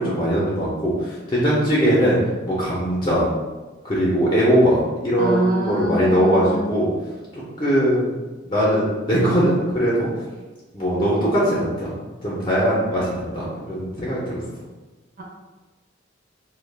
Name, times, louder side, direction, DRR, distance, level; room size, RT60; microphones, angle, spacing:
voice 1, 0.0-2.2 2.5-3.3 3.8-4.8 5.0-6.9 7.3-8.1 8.5-10.1 10.7-11.9 12.2-14.4, equal, 25° left, -6 dB, 0.5 m, -20 dB
voice 2, 5.2-6.7 15.2-15.3, right 1 dB, 50° right, -3 dB, 0.5 m, -25 dB
2.2 x 2.1 x 3.2 m, 1.2 s
head